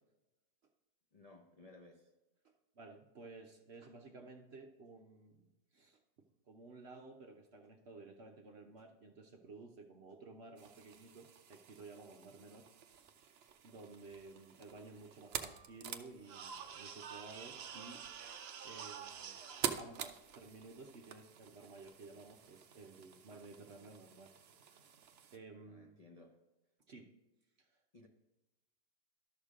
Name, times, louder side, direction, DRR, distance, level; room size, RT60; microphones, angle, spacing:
voice 1, 1.1-2.1 25.7-26.4 27.9-28.1, left 2 dB, 80° left, 1 dB, 0.3 m, -59 dB
voice 2, 2.4-6.0 6.5-13.1 13.6-18.1 18.6-19.4 19.8-24.3 25.3-26.0 26.9-27.1 27.6-27.7, right 3 dB, 55° right, 3 dB, 0.8 m, -54 dB
sound 1, 10.6-25.4, right 7 dB, 90° right, 0.5 m, -47 dB
12.0 x 6.6 x 3.7 m, 1.1 s
omnidirectional pair, 1.8 m